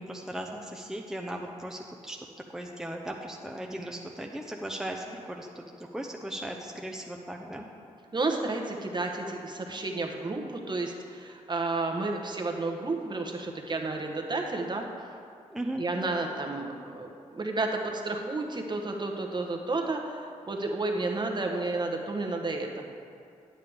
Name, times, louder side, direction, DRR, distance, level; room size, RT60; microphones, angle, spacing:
voice 1, 0.0-2.2 2.5-7.7 15.5-15.8, right 1 dB, 5° right, 1 dB, 0.8 m, -37 dB
voice 2, 8.1-14.9 15.8-20.2 20.5-22.7, right 3 dB, 35° right, 2 dB, 1.2 m, -31 dB
9.1 x 8.7 x 3.6 m, 2.3 s
supercardioid pair, 55°, 13 cm